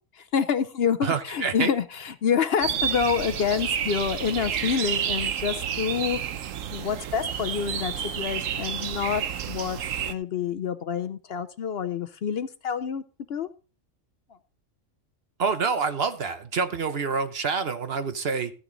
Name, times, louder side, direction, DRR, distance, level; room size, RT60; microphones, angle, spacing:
voice 1, 0.2-6.2 6.7-13.0 13.3-13.5, left 7 dB, 60° left, 12 dB, 0.8 m, -27 dB
voice 2, 1.0-1.7 15.4-18.5, right 5 dB, 55° right, 10 dB, 1.1 m, -27 dB
sound 1, 2.6-10.1, right 8 dB, 90° right, 1.2 m, -30 dB
13.5 x 9.1 x 3.9 m, 0.37 s
omnidirectional pair, 1.3 m